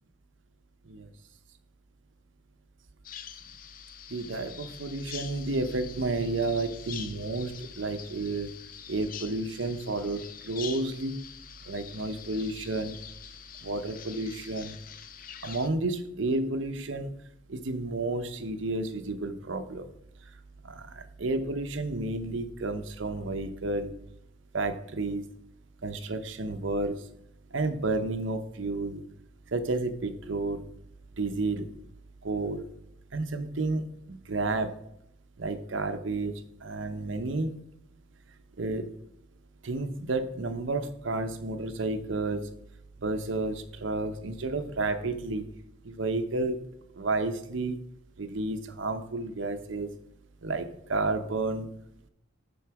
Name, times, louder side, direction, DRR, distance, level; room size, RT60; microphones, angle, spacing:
Bird vocalization bird call bird song, 3.0-15.7, left 8 dB, 45° left, 0.5 m, -45 dB
voice 1, 4.1-8.5 8.9-11.2 11.7-13.0 13.6-14.8 15.4-17.1 17.5-19.9 20.6-23.9 24.5-25.2 25.8-27.0 27.5-29.0 29.5-30.7 31.2-31.7 32.2-32.7 33.1-34.7 35.4-36.3 36.6-37.5 38.6-38.8 39.6-42.5 43.0-45.5 45.8-46.6 47.0-47.8 48.2-49.9 50.4-51.7, right 2 dB, 75° right, 8 dB, 0.8 m, -31 dB
9.7 x 3.9 x 5.8 m, 0.76 s
head